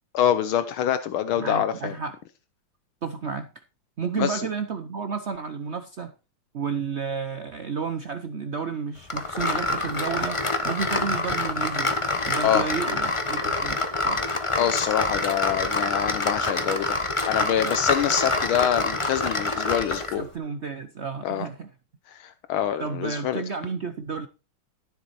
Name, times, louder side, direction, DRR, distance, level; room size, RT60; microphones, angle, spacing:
voice 1, 0.1-1.9 4.2-4.4 12.4-12.6 14.6-20.2 21.2-21.5 22.1-23.4, left 10 dB, 75° left, 11 dB, 1.6 m, -25 dB
voice 2, 1.4-2.2 3.0-3.6 4.0-6.1 6.5-14.3 20.2-21.7 22.8-24.3, right 5 dB, 75° right, 9 dB, 0.6 m, -32 dB
sound 1, 9.1-20.2, left 2 dB, 20° left, 0.8 m, -26 dB
13.5 x 7.4 x 4.3 m, 0.30 s
omnidirectional pair, 2.3 m